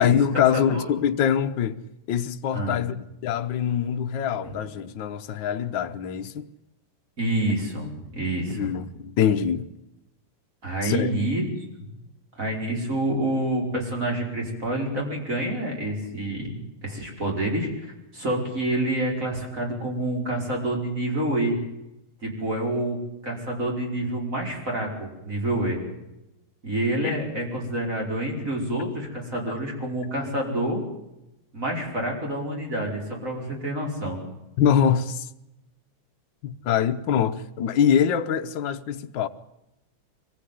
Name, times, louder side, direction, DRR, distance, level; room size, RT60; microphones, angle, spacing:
voice 1, 0.0-1.8 2.1-6.5 8.5-9.7 10.8-11.1 34.6-35.3 36.4-39.3, left 8 dB, 65° left, 1.6 m, -24 dB
voice 2, 0.5-0.9 2.5-2.8 4.4-4.6 7.2-8.7 10.6-11.5 12.4-17.7 18.1-21.6 22.2-23.0 23.2-25.8 26.6-30.8 31.5-34.2, right 1 dB, 35° right, 5.8 m, -27 dB
24.5 x 15.0 x 9.4 m
omnidirectional pair, 2.4 m